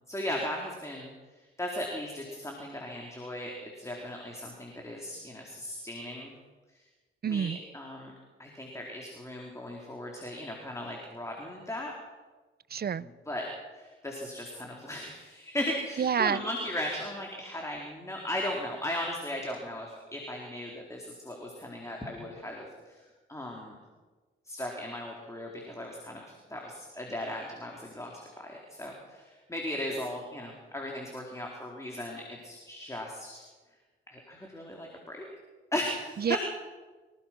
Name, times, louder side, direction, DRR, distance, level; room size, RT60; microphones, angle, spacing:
voice 1, 0.1-6.3 6.7-6.8 7.3-8.1 8.4-11.9 13.3-13.5 13.7-23.8 24.5-26.2 26.5-33.4 34.1-35.2 35.7-36.4, left 1 dB, 15° left, -1 dB, 4.2 m, -37 dB
voice 2, 7.2-7.6 12.7-13.1 16.0-16.4 36.2-36.4, right 7 dB, 50° right, 18 dB, 0.7 m, -28 dB
25.5 x 17.5 x 6.1 m, 1.3 s
cardioid pair, 80°, 21 cm